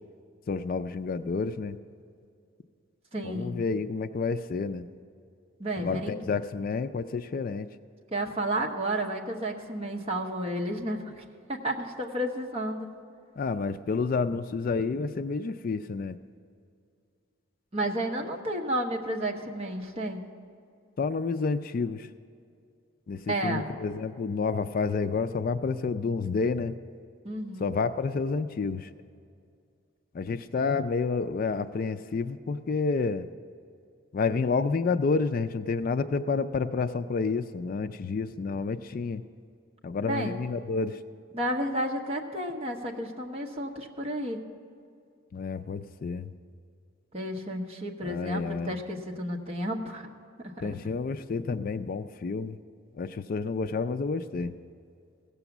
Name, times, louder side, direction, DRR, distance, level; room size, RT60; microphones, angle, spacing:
voice 1, 0.5-1.8 3.2-4.9 5.8-7.7 13.4-16.2 21.0-22.1 23.1-26.8 27.6-28.9 30.1-33.3 34.1-39.2 39.8-41.0 45.3-46.3 48.0-48.7 50.6-52.6 53.0-54.5, left 4 dB, 45° left, 10 dB, 0.3 m, -29 dB
voice 2, 3.1-3.6 5.6-6.2 8.1-11.2 11.5-12.9 17.7-20.2 23.3-23.7 27.2-27.7 40.0-40.4 41.3-44.4 47.1-50.1 50.4-50.7, right 1 dB, 30° right, 0 dB, 1.0 m, -32 dB
16.5 x 6.9 x 7.1 m, 2.4 s
head